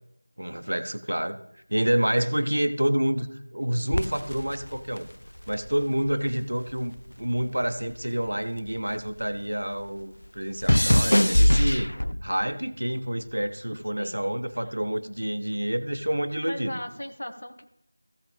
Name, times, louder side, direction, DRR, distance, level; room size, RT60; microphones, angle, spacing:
voice 1, 0.4-1.4 1.7-5.1 5.5-16.8, right 1 dB, 80° right, 11 dB, 0.8 m, -28 dB
sound 1, 3.9-6.4 6.7-9.4 9.6-12.4 13.2-13.5, equal, 85° left, 0.4 m, -24 dB
voice 2, 16.4-17.6, left 1 dB, 65° left, 6 dB, 1.4 m, -37 dB
15.0 x 6.1 x 3.5 m, 0.81 s
figure-of-eight pair, 175°, 0 cm